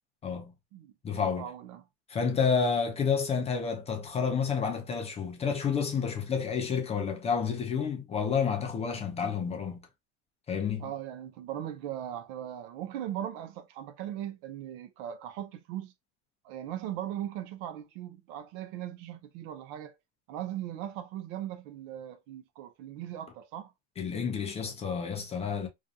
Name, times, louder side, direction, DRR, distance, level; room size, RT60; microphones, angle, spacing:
voice 1, 0.2-0.5 1.0-1.5 2.1-9.9 10.5-10.9 24.0-25.7, left 6 dB, 20° left, 0.5 m, -30 dB
voice 2, 1.2-1.8 10.8-15.9 16.4-19.9 20.3-23.7, right 11 dB, 50° right, 0.5 m, -39 dB
2.5 x 2.2 x 2.6 m
supercardioid pair, 125°, 35 cm